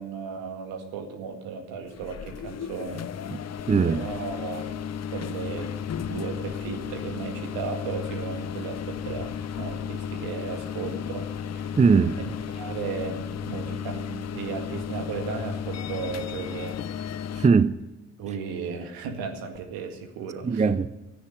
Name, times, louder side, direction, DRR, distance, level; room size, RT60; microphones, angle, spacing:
voice 1, 0.0-3.0 3.8-4.7 5.1-5.8 6.1-11.3 11.6-11.7 12.2-16.8 18.2-20.8, right 5 dB, 70° right, 2.0 m, -35 dB
sound 1, 1.8-17.5, left 8 dB, 45° left, 0.8 m, -34 dB
voice 2, 3.7-4.0 11.8-12.2 17.4-17.7 20.5-20.9, right 5 dB, 20° right, 0.6 m, -20 dB
13.5 x 9.6 x 7.7 m
hypercardioid pair, 45°, 37 cm